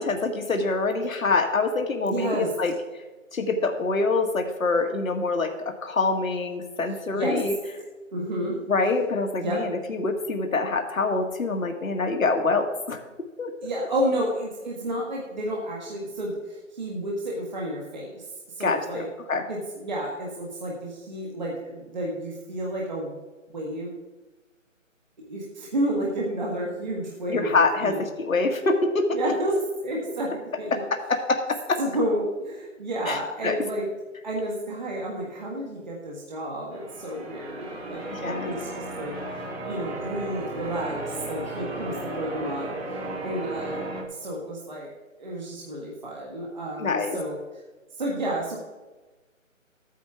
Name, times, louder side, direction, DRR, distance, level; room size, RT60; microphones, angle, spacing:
voice 1, 0.0-2.7 3.3-7.5 8.7-13.0 13.4-13.5 18.6-19.4 27.3-29.2 30.7-31.8 33.1-33.6 38.1-38.5 46.8-47.2, left 3 dB, 80° left, 4 dB, 1.8 m, -25 dB
voice 2, 2.0-2.5 7.1-7.4 8.1-8.6 9.4-9.6 13.6-19.1 19.5-23.2 23.5-24.0 25.3-28.0 29.1-29.6 29.8-30.8 31.8-33.9 34.2-38.7 39.0-39.1 39.6-42.7 43.2-43.8 44.1-44.9 45.2-47.4 48.0-48.6, right 1 dB, 35° right, -3 dB, 1.5 m, -31 dB
Church bell, 36.7-44.0, right 2 dB, 50° right, 2.3 m, -34 dB
14.0 x 9.4 x 3.6 m, 1.2 s
hypercardioid pair, 175°, 40 cm